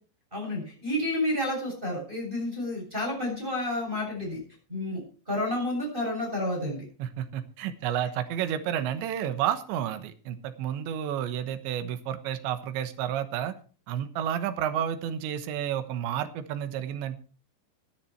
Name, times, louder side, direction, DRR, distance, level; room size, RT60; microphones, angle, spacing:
voice 1, 0.3-4.4 4.7-6.8, left 1 dB, 10° right, -1 dB, 7.0 m, -30 dB
voice 2, 7.0-13.5 13.9-17.2, right 10 dB, 80° right, 10 dB, 3.5 m, -31 dB
17.0 x 10.5 x 4.5 m, 0.38 s
omnidirectional pair, 5.2 m